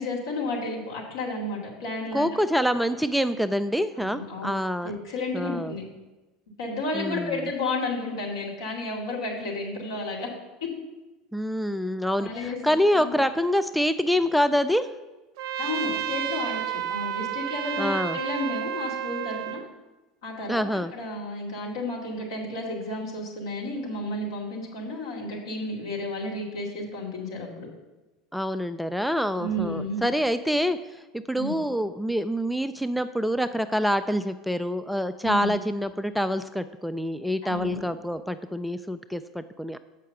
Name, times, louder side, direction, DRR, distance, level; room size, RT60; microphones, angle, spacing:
voice 1, 0.0-2.3 4.1-4.6 4.8-5.8 6.6-10.3 10.6-10.7 12.2-12.6 12.9-13.2 15.6-19.6 20.2-27.7 29.4-30.0 31.3-31.5 35.2-35.5 37.4-37.8, left 2 dB, 75° left, -3 dB, 2.3 m, -32 dB
voice 2, 2.1-4.9 5.3-5.8 6.9-7.5 11.3-14.9 17.8-18.2 20.5-20.9 28.3-30.8 31.1-39.8, equal, ahead, 11 dB, 0.3 m, -26 dB
Trumpet, 15.4-19.6, right 11 dB, 65° right, 0.5 m, -31 dB
7.4 x 5.6 x 6.6 m, 1.1 s
figure-of-eight pair, 75°, 3 cm